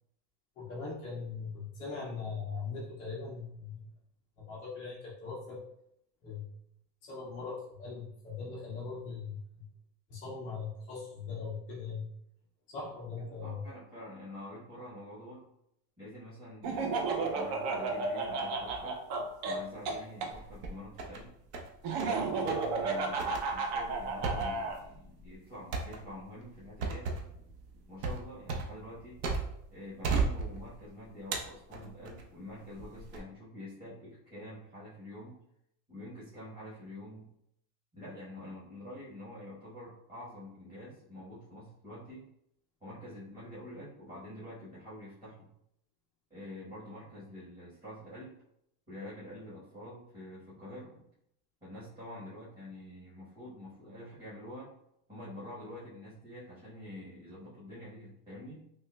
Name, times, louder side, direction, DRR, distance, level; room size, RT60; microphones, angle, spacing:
voice 1, 0.6-3.9 4.4-5.6 6.2-6.5 7.0-9.7 10.1-12.1 12.7-13.6, left 4 dB, 20° left, -9 dB, 0.3 m, -40 dB
voice 2, 13.2-15.4 16.0-19.0 19.4-21.3 22.0-27.1 27.9-29.2 29.7-35.4 35.9-37.3 37.9-42.2 42.8-45.5 46.3-48.3 48.9-51.1 51.6-54.7 55.1-58.6, left 1 dB, 10° right, -11 dB, 1.0 m, -47 dB
Laughter, 16.6-20.3 21.8-24.8, right 3 dB, 40° right, 0.5 m, -33 dB
sound 1, 20.3-21.2 21.5-22.2 22.5-22.7 23.2-29.7 30.0-30.9 31.3-32.2 32.8-33.2, right 4 dB, 75° right, 0.9 m, -35 dB
5.3 x 2.2 x 2.2 m, 0.74 s
supercardioid pair, 145°, 48 cm